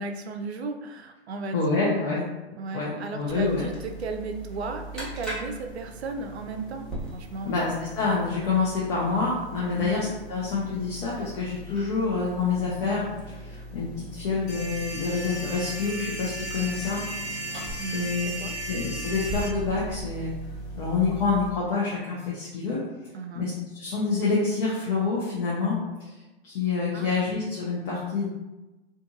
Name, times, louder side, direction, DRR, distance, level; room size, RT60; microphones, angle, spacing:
voice 1, 0.0-1.8 2.6-8.0 9.8-10.1 17.8-18.5 23.1-23.4 26.9-27.1, right 3 dB, 80° right, 5 dB, 0.5 m, -35 dB
voice 2, 1.5-2.2 2.7-3.6 7.4-17.0 17.4-17.5 17.8-18.3 18.7-20.3 20.7-22.8 23.3-26.1 26.4-28.3, left 4 dB, 50° left, -5 dB, 0.8 m, -27 dB
sound 1, 3.3-21.5, right 1 dB, ahead, 0.9 m, -40 dB
sound 2, 14.5-19.5, right 1 dB, 85° left, 1.0 m, -36 dB
2.6 x 2.6 x 2.5 m, 1.1 s
hypercardioid pair, 110°, 32 cm